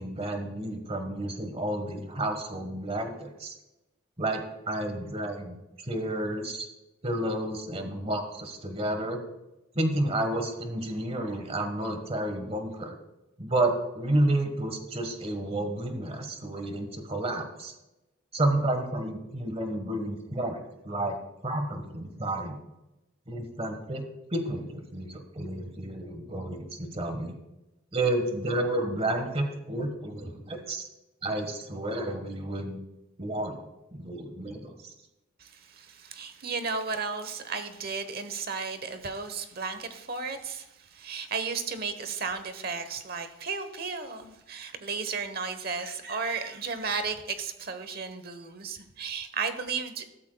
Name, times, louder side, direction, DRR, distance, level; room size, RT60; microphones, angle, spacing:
voice 1, 0.0-3.6 4.2-5.6 5.8-6.7 7.0-9.2 9.7-12.9 13.4-17.7 18.3-20.6 20.8-21.2 21.4-22.6 23.3-24.0 24.3-27.3 27.9-30.9 31.2-32.8 33.2-33.6 33.9-34.9, right 1 dB, 30° right, 6 dB, 1.4 m, -31 dB
voice 2, 35.4-50.0, right 5 dB, 50° right, 10 dB, 1.0 m, -34 dB
13.0 x 13.0 x 2.3 m, 0.96 s
head